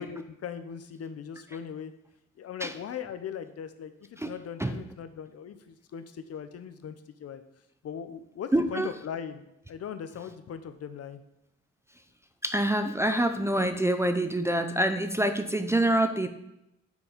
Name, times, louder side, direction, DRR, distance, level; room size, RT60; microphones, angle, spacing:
voice 1, 0.0-1.9 2.4-6.9 7.2-7.4 7.8-11.2, left 8 dB, 55° left, 10 dB, 0.7 m, -39 dB
voice 2, 8.5-8.9 12.4-16.3, right 1 dB, 10° right, 8 dB, 0.5 m, -26 dB
6.9 x 4.5 x 5.1 m, 0.84 s
cardioid pair, 90°, 30 cm